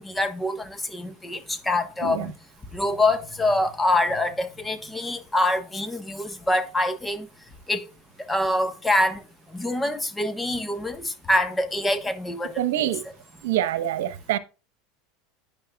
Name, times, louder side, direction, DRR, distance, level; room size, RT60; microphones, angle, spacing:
voice 1, 0.0-2.3 2.7-7.2 7.7-7.8 8.3-9.2 9.5-12.5 12.8-12.9, left 1 dB, 10° left, 1.3 m, -25 dB
voice 2, 12.6-13.0 13.4-14.4, right 12 dB, 80° right, 1.1 m, -25 dB
11.0 x 9.7 x 2.4 m
supercardioid pair, 120°, 0 cm